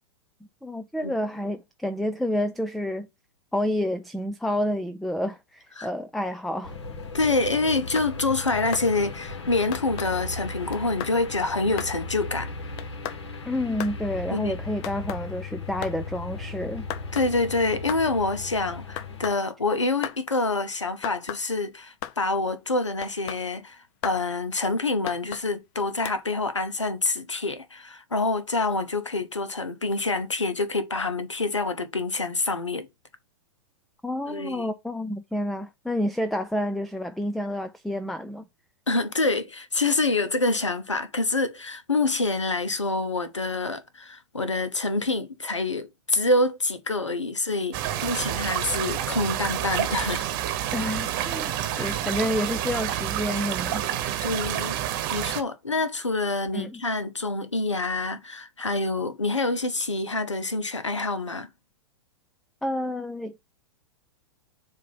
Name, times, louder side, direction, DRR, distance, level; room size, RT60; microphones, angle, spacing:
voice 1, 0.6-3.1 3.5-6.7 13.5-16.9 34.0-38.4 50.7-53.9 56.5-56.8 62.6-63.4, left 1 dB, ahead, 0.3 m, -29 dB
sound 1, 6.6-19.3, left 3 dB, 65° left, 1.7 m, -37 dB
voice 2, 7.1-12.5 14.3-14.6 17.1-32.9 34.3-34.7 38.9-50.3 51.7-52.0 54.2-54.8 55.1-61.5, left 3 dB, 85° left, 0.9 m, -26 dB
sound 2, 7.9-8.1 8.7-8.9 9.7-10.1 10.7-11.2 11.8-12.0 12.8-13.2 13.8-14.0 14.8-15.2 15.8-16.0 16.9-17.3 17.9-18.1 19.0-19.4 20.0-20.2 21.0-21.4 22.0-22.2 23.0-23.4 24.0-24.2 25.1-25.5 26.1-26.2, left 11 dB, 40° left, 0.7 m, -35 dB
sound 3, 47.7-55.4, right 12 dB, 45° right, 1.0 m, -28 dB
7.4 x 2.8 x 5.4 m
figure-of-eight pair, 100°, 15 cm